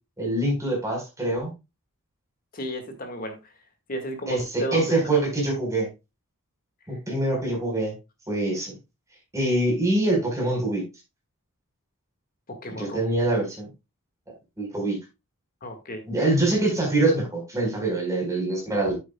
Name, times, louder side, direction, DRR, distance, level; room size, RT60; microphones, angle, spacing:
voice 1, 0.2-1.5 4.3-5.9 6.9-7.9 8.3-8.8 9.3-10.8 12.8-13.7 14.6-15.0 16.1-19.0, right 2 dB, 15° right, -1 dB, 4.5 m, -24 dB
voice 2, 2.5-3.5 3.9-5.0 12.5-13.0 15.6-16.0, equal, 40° left, 6 dB, 1.8 m, -33 dB
9.6 x 8.2 x 2.3 m, 0.25 s
head